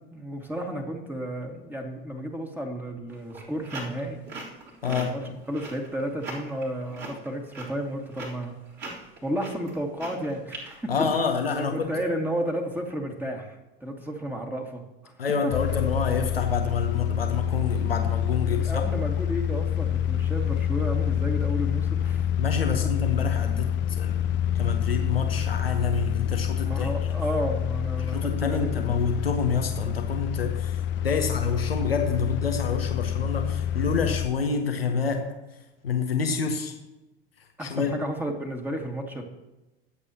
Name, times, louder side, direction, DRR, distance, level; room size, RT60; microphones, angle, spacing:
voice 1, 0.1-4.2 4.9-8.5 9.2-10.9 11.5-15.1 15.4-15.5 18.5-22.3 26.6-28.7 37.6-39.2, equal, 5° right, 2 dB, 2.2 m, -32 dB
sound 1, 3.1-11.7, right 2 dB, 40° right, 3.8 m, -40 dB
voice 2, 4.8-5.1 10.9-11.9 15.2-18.8 22.4-24.3 24.5-26.9 28.0-35.2 35.8-36.7 37.6-37.9, left 5 dB, 85° left, 4 dB, 1.2 m, -27 dB
sound 2, 15.5-34.3, left 10 dB, 40° left, 0.7 m, -27 dB
22.5 x 8.2 x 3.0 m, 1.0 s
figure-of-eight pair, 75°, 29 cm